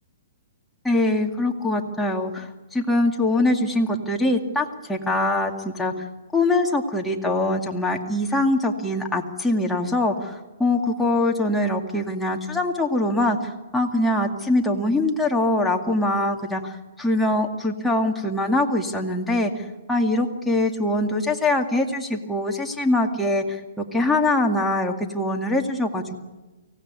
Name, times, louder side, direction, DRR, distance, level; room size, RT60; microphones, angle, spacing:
voice 1, 0.8-5.9 6.3-13.4 13.7-19.5 19.9-26.2, left 2 dB, 5° left, 1 dB, 2.1 m, -23 dB
24.0 x 18.0 x 9.6 m, 1.1 s
hypercardioid pair, 150°, 0 cm